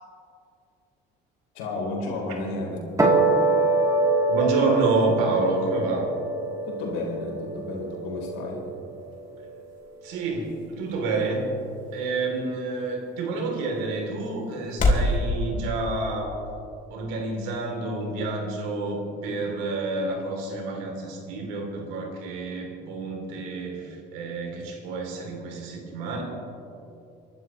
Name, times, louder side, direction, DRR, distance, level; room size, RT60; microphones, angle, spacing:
voice 1, 1.5-2.8 6.6-8.7, left 2 dB, 90° left, -1 dB, 3.6 m, -32 dB
sound 1, 3.0-9.5, right 3 dB, 15° right, 2.9 m, -25 dB
voice 2, 4.3-6.1 10.0-11.4 11.9-16.4 16.9-26.2, right 3 dB, 90° right, 1 dB, 3.0 m, -29 dB
sound 2, 8.9-15.2, left 2 dB, 45° left, 3.0 m, -31 dB
28.5 x 12.0 x 3.1 m, 2.7 s
supercardioid pair, 85°, 20 cm